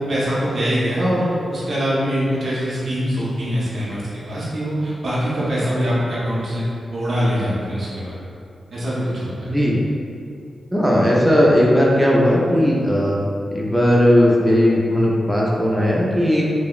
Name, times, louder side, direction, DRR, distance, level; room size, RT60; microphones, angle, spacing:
voice 1, 0.0-6.6 6.9-8.2 8.7-9.5, equal, 60° right, -8 dB, 0.6 m, -23 dB
voice 2, 9.4-9.8 10.7-13.2 13.5-16.4, equal, 10° right, -5 dB, 0.4 m, -17 dB
2.8 x 2.0 x 2.4 m, 2.4 s
cardioid pair, 65°, 0 cm